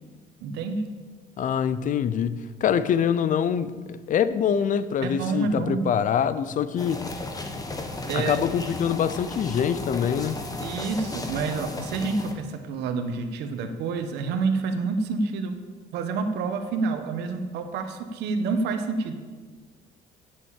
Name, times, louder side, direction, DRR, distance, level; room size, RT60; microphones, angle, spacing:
voice 1, 0.4-0.9 5.0-5.9 8.1-8.4 10.6-15.5 15.9-19.1, right 4 dB, 85° right, 1.4 m, -28 dB
voice 2, 1.4-7.0 8.1-10.4, left 8 dB, 50° left, 0.7 m, -25 dB
sound 1, 6.8-12.3, left 2 dB, 20° left, 1.6 m, -35 dB
9.4 x 7.6 x 8.4 m
cardioid pair, 110°, 17 cm